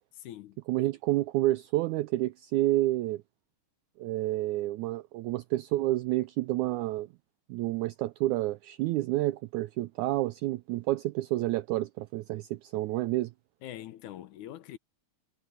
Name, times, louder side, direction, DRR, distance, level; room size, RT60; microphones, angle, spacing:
voice 1, 0.1-0.6 13.6-14.8, left 12 dB, 70° left, 2.1 m, -43 dB
voice 2, 0.7-3.2 4.0-7.1 7.5-13.3, right 16 dB, 85° right, 1.7 m, -29 dB
omnidirectional pair, 4.0 m